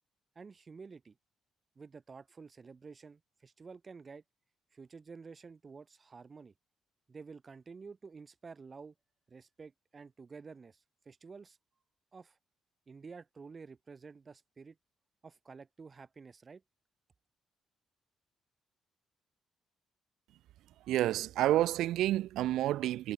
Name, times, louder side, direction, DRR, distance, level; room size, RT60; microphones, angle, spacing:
voice 1, 0.4-1.2 1.8-4.2 4.7-6.5 7.1-8.9 9.3-11.6 12.1-12.4 12.9-14.8 15.2-16.6, right 5 dB, 35° right, 7.1 m, -51 dB
voice 2, 20.9-23.1, right 14 dB, 85° right, 0.9 m, -29 dB
cardioid pair, 90°, 0 cm